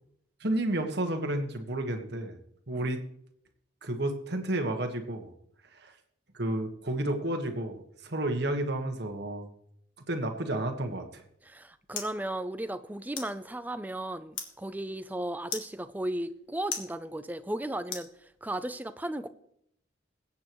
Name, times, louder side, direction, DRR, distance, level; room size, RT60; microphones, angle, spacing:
voice 1, 0.4-2.4 2.7-3.0 3.8-5.3 5.7-5.9 6.3-9.5 10.0-11.2, right 1 dB, 55° right, 5 dB, 1.5 m, -31 dB
sound 1, 11.1-18.7, left 6 dB, 75° left, 1.8 m, -44 dB
voice 2, 11.4-19.3, right 1 dB, 10° right, 11 dB, 0.5 m, -35 dB
22.0 x 8.5 x 3.1 m, 0.73 s
head